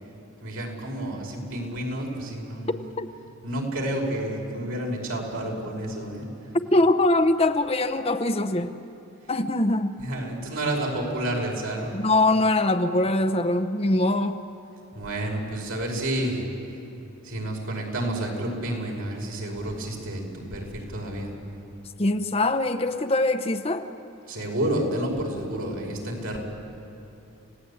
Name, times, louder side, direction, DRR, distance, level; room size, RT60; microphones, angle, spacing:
voice 1, 0.4-2.8 3.4-6.5 10.0-11.9 14.9-16.4 17.2-21.3 24.3-26.4, right 1 dB, 80° right, 0 dB, 5.5 m, -30 dB
voice 2, 2.7-3.1 6.7-8.7 9.3-10.0 11.9-14.4 22.0-23.8, left 2 dB, 25° left, 8 dB, 0.7 m, -23 dB
29.0 x 17.5 x 8.6 m, 2.9 s
head